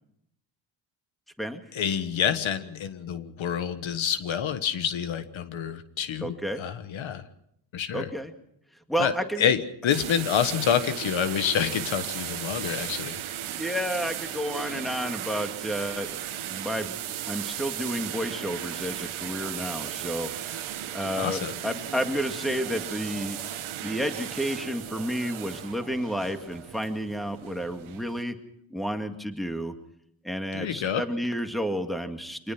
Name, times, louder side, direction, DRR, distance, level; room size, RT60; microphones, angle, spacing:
voice 1, 1.7-7.2 7.7-8.1 9.0-9.1 9.4-13.2 21.2-21.5 30.5-31.0, left 8 dB, 70° left, 11 dB, 1.5 m, -27 dB
voice 2, 6.2-6.6 7.9-8.3 8.9-9.5 13.5-16.2 16.5-16.9 17.3-20.7 20.9-23.4 23.8-28.3 28.7-29.7 30.2-32.5, equal, ahead, 6 dB, 2.1 m, -31 dB
sound 1, 9.9-28.2, right 11 dB, 80° right, 1.5 m, -36 dB
25.0 x 19.5 x 6.0 m, 0.73 s
cardioid pair, 95°, 48 cm